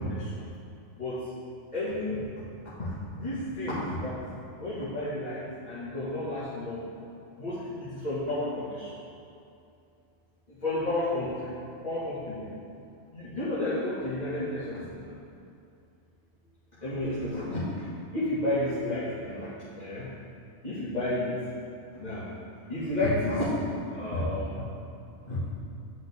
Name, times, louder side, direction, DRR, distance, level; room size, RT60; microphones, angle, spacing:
voice 1, 1.7-2.2 3.2-4.2 4.6-5.4 5.7-6.8 7.4-7.6 8.0-8.4 10.6-11.3 11.8-12.4 13.3-14.8 16.8-17.6 18.1-19.5 19.8-20.0 20.6-21.3 22.0-22.2 22.7-23.5 24.0-24.5 25.3-25.4, left 1 dB, 35° left, -13 dB, 2.0 m, -30 dB
11.0 x 5.8 x 3.6 m, 2.6 s
omnidirectional pair, 1.3 m